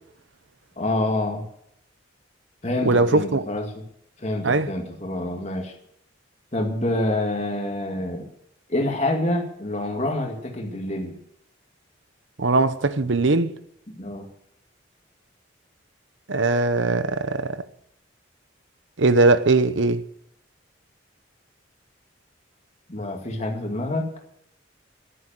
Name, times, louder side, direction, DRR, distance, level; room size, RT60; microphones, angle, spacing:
voice 1, 0.8-1.5 2.6-3.8 4.2-5.7 6.5-8.3 8.7-11.2 14.0-14.3 22.9-24.1, left 1 dB, 35° left, 2.2 m, -27 dB
voice 2, 2.9-3.4 4.4-4.7 12.4-13.5 16.3-17.6 19.0-20.0, right 3 dB, 75° right, 0.9 m, -20 dB
10.0 x 9.8 x 9.1 m
head